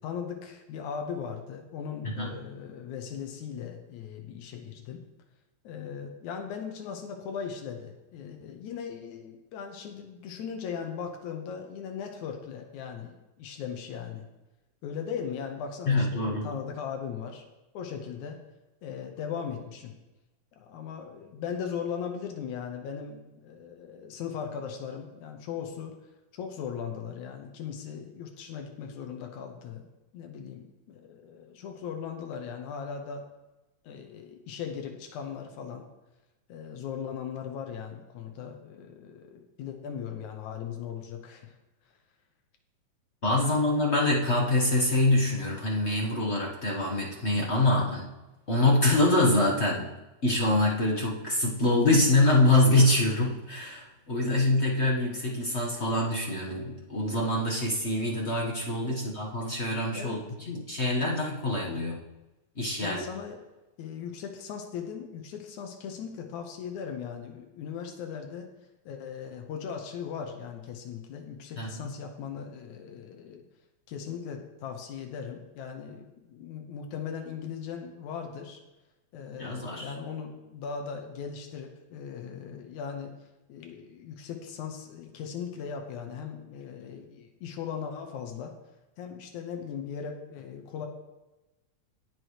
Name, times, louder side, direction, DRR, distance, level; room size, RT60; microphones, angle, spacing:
voice 1, 0.0-5.0 5.6-14.3 14.8-17.4 17.7-18.4 18.8-20.0 20.6-25.9 26.3-29.9 30.1-33.2 33.8-35.9 36.5-41.5 43.3-43.6 58.9-59.0 59.9-60.5 62.8-63.4 63.8-68.5 68.9-73.4 73.9-78.6 79.1-83.1 83.5-88.5 89.0-90.9, left 7 dB, 85° left, 3 dB, 2.5 m, -38 dB
voice 2, 15.9-16.5 43.2-48.1 48.5-49.9 50.2-60.2 60.5-62.0 62.6-63.0 71.6-71.9 79.4-79.9, left 2 dB, 50° left, -3 dB, 0.7 m, -25 dB
18.0 x 6.2 x 3.2 m, 1.0 s
omnidirectional pair, 3.3 m